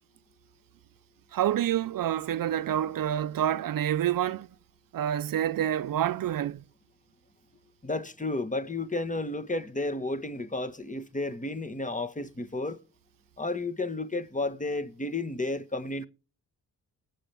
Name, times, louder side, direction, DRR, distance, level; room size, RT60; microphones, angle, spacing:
voice 1, 1.3-4.5 4.9-6.6, right 11 dB, 65° right, 0.6 m, -28 dB
voice 2, 7.8-12.8 13.4-16.1, left 2 dB, 20° left, 1.5 m, -32 dB
19.0 x 7.6 x 3.4 m
cardioid pair, 85°, 36 cm